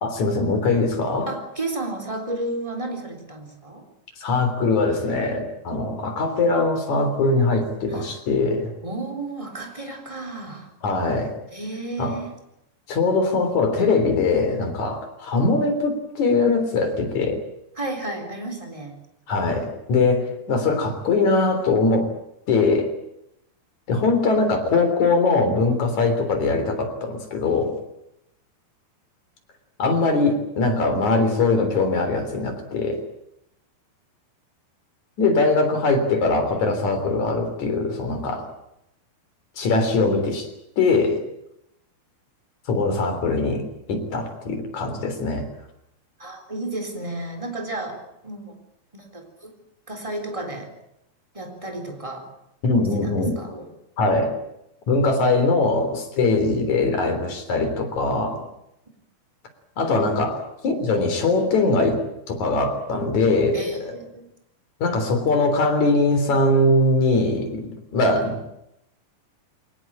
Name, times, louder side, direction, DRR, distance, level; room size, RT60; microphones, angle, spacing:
voice 1, 0.0-1.3 4.2-8.7 10.8-11.3 12.0-12.2 12.9-17.4 19.3-22.1 22.5-22.9 23.9-27.8 29.8-33.0 35.2-38.5 39.6-40.5 40.8-41.2 42.7-45.5 52.6-53.3 54.0-54.4 54.9-58.4 59.8-62.0 62.3-63.6 64.8-68.6, left 3 dB, 50° left, 7 dB, 4.7 m, -21 dB
voice 2, 1.3-3.9 7.9-8.1 8.8-10.7 11.5-12.3 17.8-19.0 46.2-48.6 48.9-49.5 49.9-50.7 51.3-52.3 52.9-53.7 56.6-57.3 60.3-60.4 63.5-64.3, right 2 dB, 10° right, 4 dB, 3.4 m, -33 dB
23.5 x 19.0 x 8.8 m, 0.83 s
omnidirectional pair, 4.3 m